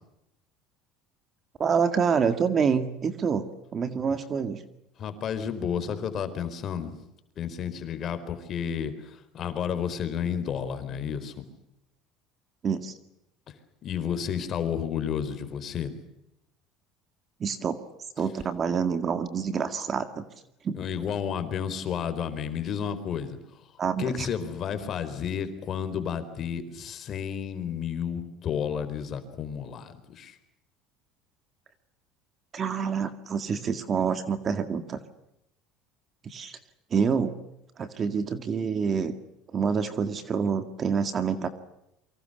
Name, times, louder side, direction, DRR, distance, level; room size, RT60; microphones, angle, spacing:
voice 1, 1.6-3.4 3.7-4.6 12.6-12.9 17.4-17.8 18.2-20.3 20.6-20.8 23.8-24.3 32.5-35.0 36.2-36.6 36.9-37.3 37.8-39.1 39.5-41.5, right 6 dB, 30° right, 10 dB, 2.0 m, -27 dB
voice 2, 5.0-6.9 7.4-11.4 13.8-15.9 20.7-23.4 24.0-30.4, left 8 dB, 35° left, 10 dB, 4.3 m, -31 dB
29.0 x 24.5 x 6.8 m, 0.84 s
cardioid pair, 150°, 0 cm